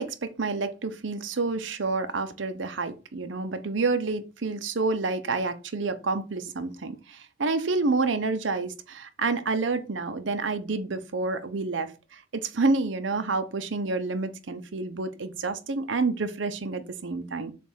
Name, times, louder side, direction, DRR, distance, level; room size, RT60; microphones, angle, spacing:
voice 1, 0.0-17.5, right 3 dB, 80° right, 0.7 m, -29 dB
7.2 x 2.5 x 5.5 m
head